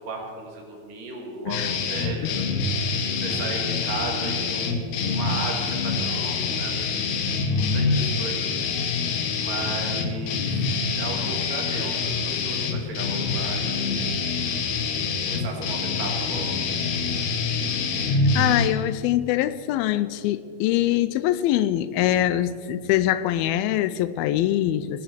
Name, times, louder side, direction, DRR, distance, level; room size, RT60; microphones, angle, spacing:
voice 1, 0.0-2.5 2.8-2.9 3.2-6.7 7.5-8.6 9.3-14.1 15.2-16.5, right 3 dB, 65° right, 1 dB, 3.5 m, -35 dB
voice 2, 1.5-1.8 2.2-2.3 18.0-25.0, left 13 dB, 85° left, 15 dB, 2.4 m, -23 dB
sound 1, 1.5-18.7, left 4 dB, 65° left, 1.9 m, -26 dB
18.5 x 7.8 x 6.6 m, 2.1 s
omnidirectional pair, 4.3 m